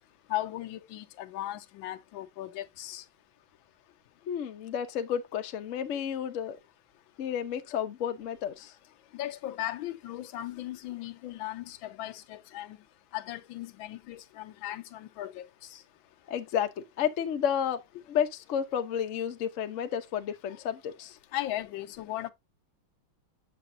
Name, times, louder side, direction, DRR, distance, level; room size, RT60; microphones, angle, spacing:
voice 1, 0.3-3.0 9.1-12.8 13.1-15.5 21.3-22.3, left 14 dB, 80° left, 1.4 m, -37 dB
voice 2, 4.3-6.6 7.2-8.7 16.3-17.8 18.1-21.2, left 8 dB, 60° left, 0.8 m, -31 dB
6.9 x 6.8 x 2.6 m
omnidirectional pair, 2.2 m